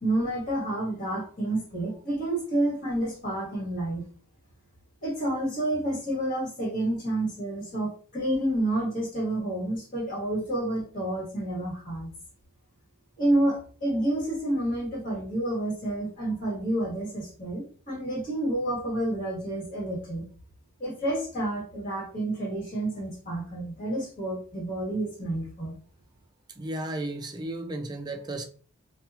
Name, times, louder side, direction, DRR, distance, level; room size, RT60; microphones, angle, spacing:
voice 1, 0.0-4.0 5.0-12.1 13.2-20.2 20.8-25.7, right 1 dB, 45° left, 1.5 m, -29 dB
voice 2, 26.6-28.4, right 1 dB, 20° right, 0.3 m, -34 dB
2.8 x 2.2 x 2.4 m
head